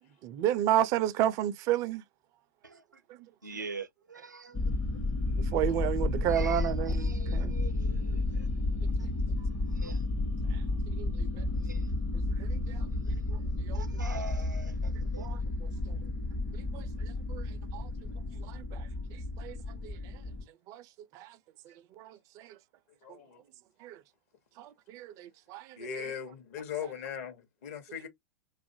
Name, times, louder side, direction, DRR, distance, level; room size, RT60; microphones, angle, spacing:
voice 1, 0.2-2.0 5.5-7.6 11.0-11.4 12.4-12.8 13.3-13.4 13.6-13.8 15.2-15.4 16.7-17.4 17.7-17.9 18.5-18.9 19.4-19.6 19.8-20.0 20.7-20.8 21.1-21.4 22.0-22.5 23.8-24.0 24.6-25.8, right 11 dB, 35° right, 0.4 m, -32 dB
voice 2, 2.6-3.0 3.4-4.7 6.2-8.5 9.7-10.1 11.5-11.9 12.9-13.2 13.7-15.3, right 4 dB, 90° right, 0.5 m, -44 dB
sound 1, 4.5-20.4, left 2 dB, 25° left, 0.6 m, -32 dB
voice 3, 23.0-23.4 25.8-28.1, left 7 dB, 55° left, 0.8 m, -39 dB
2.5 x 2.3 x 2.6 m
figure-of-eight pair, 95°, 10 cm